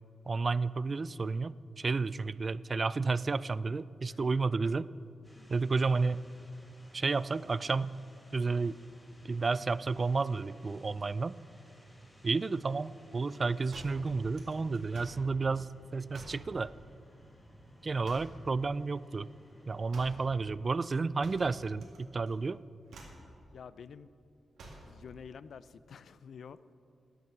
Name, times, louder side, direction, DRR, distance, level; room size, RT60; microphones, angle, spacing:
voice 1, 0.3-4.9 5.5-6.3 6.9-8.0 8.3-8.8 9.2-11.4 12.2-16.7 17.8-19.3 19.7-22.6, right 4 dB, 40° right, 18 dB, 0.3 m, -31 dB
sound 1, 5.2-20.5, equal, 10° left, 3.3 m, -58 dB
sound 2, 13.7-15.3 16.1-16.5 18.0-18.5 19.9-20.3 21.2-22.0 22.3-22.5 22.9-23.3 24.6-25.0, right 2 dB, 90° right, 2.2 m, -49 dB
voice 2, 23.5-24.1 24.8-26.6, left 6 dB, 75° left, 16 dB, 0.4 m, -49 dB
14.0 x 9.3 x 6.0 m, 2.5 s
cardioid pair, 80°, 0 cm